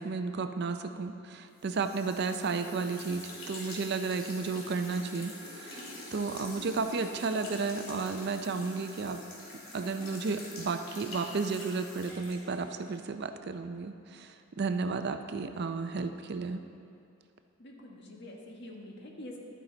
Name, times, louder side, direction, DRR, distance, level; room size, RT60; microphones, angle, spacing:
voice 1, 0.0-9.2 9.7-16.6, right 4 dB, 50° right, 8 dB, 0.5 m, -33 dB
sound 1, 1.6-13.0, left 2 dB, 75° left, 2.5 m, -45 dB
voice 2, 17.6-19.4, left 1 dB, 55° left, -1 dB, 1.5 m, -46 dB
12.0 x 9.3 x 3.9 m, 2.5 s
head